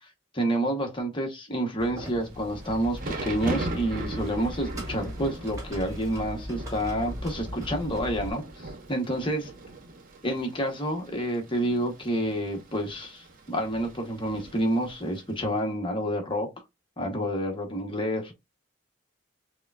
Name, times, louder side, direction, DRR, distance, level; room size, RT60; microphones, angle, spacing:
voice 1, 0.3-9.5 10.2-16.5 17.0-18.3, right 1 dB, 25° left, 1.1 m, -29 dB
sound 1, 1.8-8.3, equal, 15° right, 1.6 m, -38 dB
Thunder / Rain, 2.3-15.3, right 2 dB, 45° right, 0.8 m, -40 dB
6.5 x 2.2 x 2.4 m
head